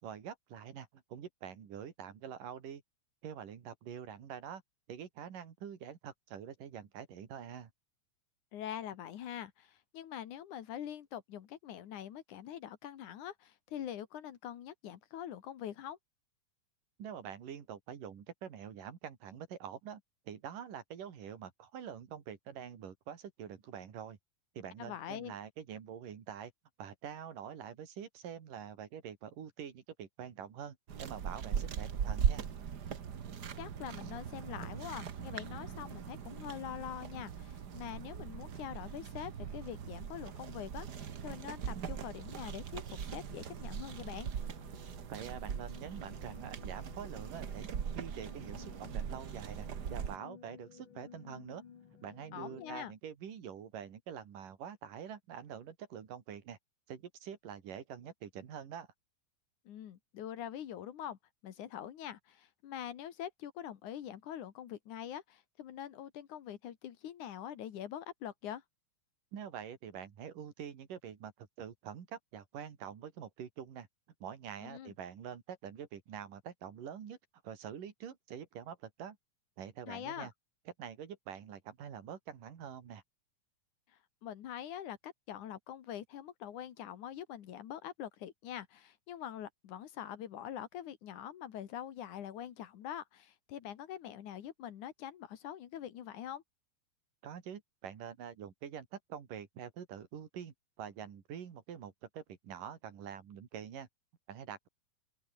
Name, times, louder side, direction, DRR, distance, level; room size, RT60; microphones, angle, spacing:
voice 1, 0.0-2.8 3.2-4.6 4.9-7.7 17.0-20.0 20.3-24.2 24.6-26.5 26.8-32.5 45.1-51.6 52.0-56.6 56.9-58.9 69.3-73.9 74.2-77.2 77.4-79.2 79.6-80.3 80.8-83.0 97.2-103.9 104.3-104.7, right 8 dB, 80° right, 4.2 m, -46 dB
voice 2, 8.5-16.0 24.8-25.4 33.6-44.3 52.3-52.9 59.7-61.2 61.4-68.6 74.6-74.9 79.9-80.3 84.2-96.4, left 10 dB, 70° left, 3.0 m, -44 dB
sound 1, 30.9-50.2, right 7 dB, 50° right, 1.3 m, -40 dB
sound 2, 44.4-52.8, left 7 dB, 45° left, 2.1 m, -55 dB
open air
omnidirectional pair, 3.8 m